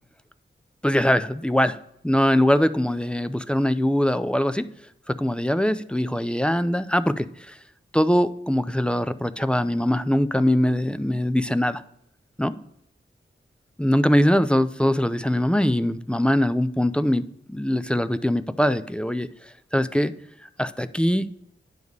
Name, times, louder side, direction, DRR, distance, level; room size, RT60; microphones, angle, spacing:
voice 1, 0.8-1.8 2.0-4.7 5.1-7.6 7.9-11.8 12.4-12.5 13.8-19.3 19.7-20.1 20.6-21.3, equal, 5° left, 12 dB, 0.3 m, -22 dB
9.3 x 3.6 x 6.3 m, 0.76 s
wide cardioid pair, 110°, 20 cm